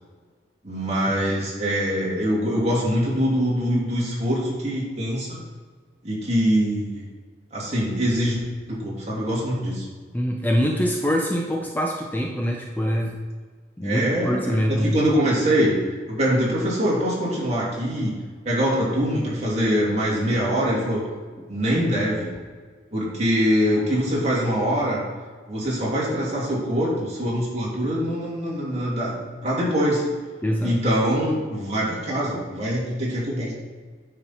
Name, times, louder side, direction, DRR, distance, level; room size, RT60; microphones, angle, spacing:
voice 1, 0.6-5.4 6.0-7.1 7.5-8.4 8.7-9.9 13.8-15.8 16.1-18.1 18.4-21.0 21.5-22.3 22.9-25.0 25.5-30.0 30.6-33.5, equal, 40° right, -6 dB, 2.8 m, -23 dB
voice 2, 10.1-13.2 13.8-15.0 21.4-21.5 30.4-30.8, equal, 10° left, 1 dB, 0.6 m, -24 dB
9.6 x 5.8 x 4.4 m, 1.5 s
head